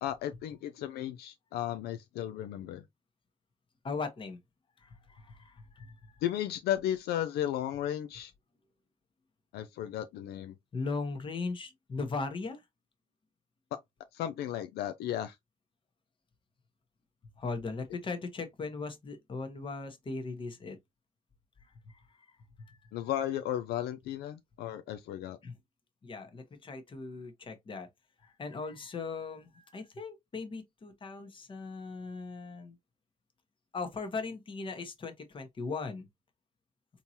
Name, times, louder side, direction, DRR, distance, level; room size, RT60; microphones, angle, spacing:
voice 1, 0.0-2.8 6.2-8.3 9.5-10.5 14.1-15.4 22.9-25.4, left 11 dB, 70° left, 0.4 m, -34 dB
voice 2, 3.8-4.4 4.8-6.2 10.7-12.6 17.4-20.8 21.6-22.8 25.4-25.6 26.0-27.9 28.2-32.7 33.7-36.1, left 4 dB, 30° left, 1.0 m, -39 dB
3.7 x 2.8 x 2.7 m
cardioid pair, 110°, 17 cm